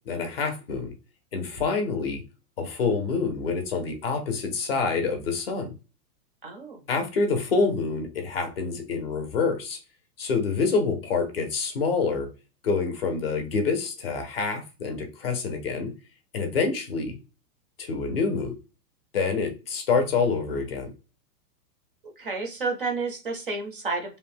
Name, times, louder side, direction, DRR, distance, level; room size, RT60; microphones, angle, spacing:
voice 1, 0.1-0.9 1.3-2.2 2.6-5.7 6.9-9.8 10.2-12.3 12.6-15.9 16.3-17.2 17.8-18.5 19.1-20.9, left 4 dB, 40° left, 0.5 m, -27 dB
voice 2, 6.4-6.8 22.0-24.2, right 3 dB, 40° right, 0.4 m, -31 dB
2.6 x 2.0 x 3.3 m
supercardioid pair, 175°, 47 cm